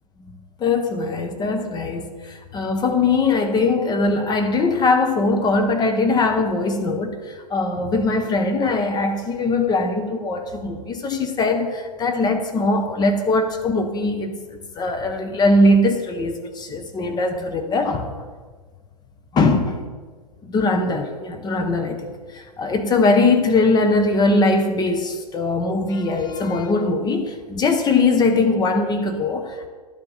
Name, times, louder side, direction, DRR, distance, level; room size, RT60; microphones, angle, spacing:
voice 1, 0.6-18.2 19.3-19.9 20.4-29.7, left 3 dB, 20° left, 6 dB, 0.9 m, -21 dB
11.5 x 9.5 x 3.9 m, 1.5 s
figure-of-eight pair, 110°, 20 cm